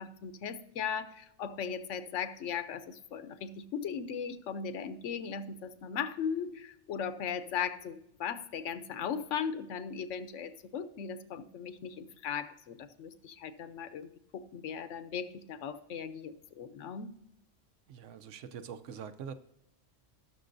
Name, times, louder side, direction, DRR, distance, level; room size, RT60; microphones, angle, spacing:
voice 1, 0.0-17.1, left 7 dB, 85° left, 12 dB, 1.1 m, -38 dB
voice 2, 17.9-19.3, right 7 dB, 90° right, 12 dB, 1.0 m, -44 dB
18.0 x 6.2 x 2.6 m, 0.81 s
omnidirectional pair, 1.2 m